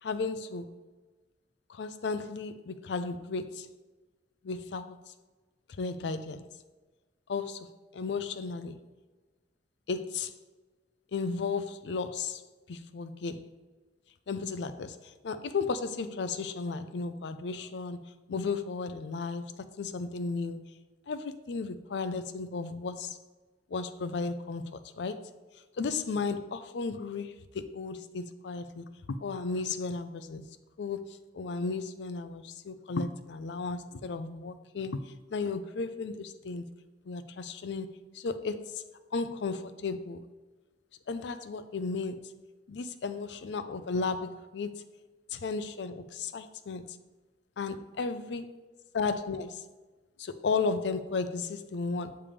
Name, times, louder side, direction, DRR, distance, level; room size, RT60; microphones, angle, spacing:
voice 1, 0.0-0.7 1.7-3.7 4.4-5.0 5.8-6.5 7.3-7.7 7.9-8.8 9.9-10.3 11.1-12.4 12.7-13.5 14.3-18.0 18.3-20.7 21.1-23.2 23.7-24.7 25.0-25.3 25.8-30.4 30.8-31.1 31.3-36.6 37.1-38.8 39.1-40.2 41.1-42.3 42.7-44.8 45.4-47.0 47.6-48.5 48.9-49.6 50.2-52.2, left 4 dB, 70° left, 0.4 m, -34 dB
7.0 x 3.4 x 5.0 m
head